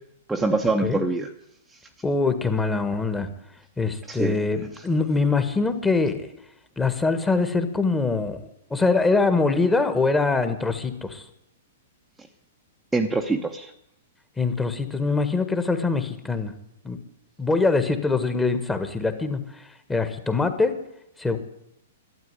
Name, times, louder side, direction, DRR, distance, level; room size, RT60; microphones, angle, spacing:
voice 1, 0.3-1.3 4.1-4.4 12.9-13.7, right 3 dB, 5° right, 1 dB, 0.9 m, -24 dB
voice 2, 2.0-3.3 3.8-6.3 6.8-8.4 8.7-11.2 14.4-16.5 16.8-17.0 17.4-19.4 19.9-20.7 21.2-21.4, left 3 dB, 10° left, 9 dB, 1.5 m, -23 dB
12.5 x 8.8 x 9.8 m, 0.77 s
hypercardioid pair, 115°, 0 cm